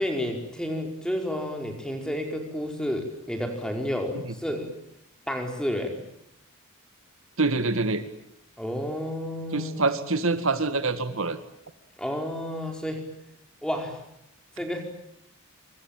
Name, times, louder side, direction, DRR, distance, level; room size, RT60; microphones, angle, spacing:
voice 1, 0.0-4.7 5.3-6.0 8.6-9.9 12.0-13.1 13.6-14.0 14.6-14.8, equal, 5° left, 3 dB, 4.9 m, -31 dB
voice 2, 7.4-8.0 9.5-11.4, right 3 dB, 65° right, 10 dB, 2.0 m, -25 dB
26.5 x 25.0 x 9.1 m, 0.79 s
head